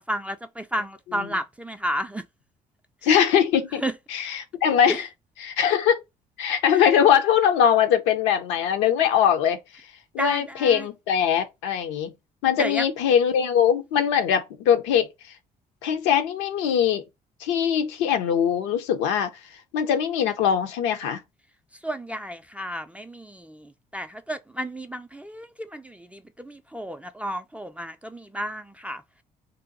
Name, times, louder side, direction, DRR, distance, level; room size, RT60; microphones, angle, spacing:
voice 1, 0.1-2.3 3.8-3.9 4.9-5.0 10.2-10.9 12.6-12.9 21.8-29.0, equal, 5° right, 0.3 m, -32 dB
voice 2, 3.0-3.8 4.1-5.1 5.4-6.0 6.4-9.6 10.1-12.1 12.4-15.1 15.8-17.0 17.4-19.3 19.7-21.2, left 8 dB, 65° left, 0.6 m, -21 dB
2.7 x 2.2 x 3.8 m
figure-of-eight pair, 50°, 20 cm